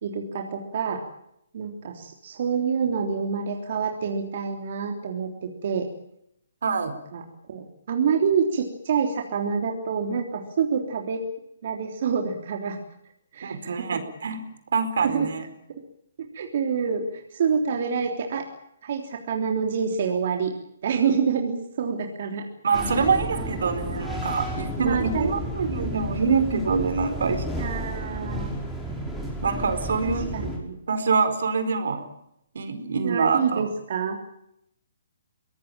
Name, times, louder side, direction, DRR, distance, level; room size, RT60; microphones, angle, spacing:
voice 1, 0.0-1.0 1.5-5.9 7.1-7.2 7.5-11.2 11.6-12.8 13.3-14.0 15.0-15.3 16.3-18.5 18.8-20.5 20.8-22.4 23.4-24.1 24.8-25.3 27.6-28.5 30.0-30.8 33.0-34.2, right 6 dB, 50° right, 3 dB, 3.4 m, -27 dB
voice 2, 6.6-6.9 13.4-15.5 22.6-27.4 29.4-30.5 30.9-32.1 32.5-33.7, right 5 dB, 70° right, 10 dB, 4.4 m, -25 dB
sound 1, 22.7-30.6, equal, 5° left, 5.5 m, -32 dB
23.5 x 18.5 x 9.0 m, 0.78 s
hypercardioid pair, 155°, 0 cm